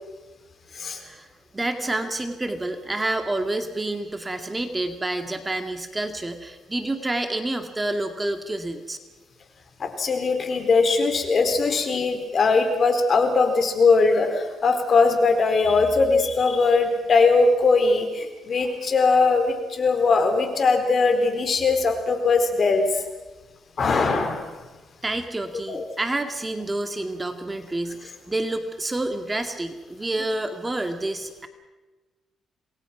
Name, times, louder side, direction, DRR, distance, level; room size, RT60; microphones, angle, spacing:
voice 1, 1.5-9.0 25.0-31.5, right 2 dB, 20° right, 6 dB, 2.2 m, -28 dB
voice 2, 9.8-23.0 23.8-24.5 25.7-25.8, left 4 dB, 45° left, 6 dB, 4.3 m, -20 dB
27.5 x 20.5 x 6.1 m, 1.2 s
cardioid pair, 90°, 0 cm